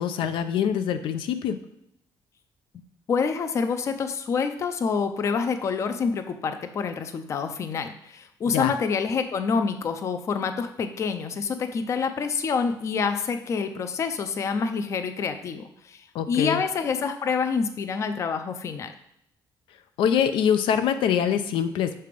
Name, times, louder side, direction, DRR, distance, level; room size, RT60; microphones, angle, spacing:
voice 1, 0.0-1.6 8.5-8.7 16.1-16.6 20.0-22.0, left 8 dB, 85° left, 10 dB, 0.5 m, -24 dB
voice 2, 3.1-18.9, left 5 dB, 35° left, 8 dB, 0.4 m, -27 dB
6.7 x 3.3 x 5.1 m, 0.75 s
cardioid pair, 165°, 8 cm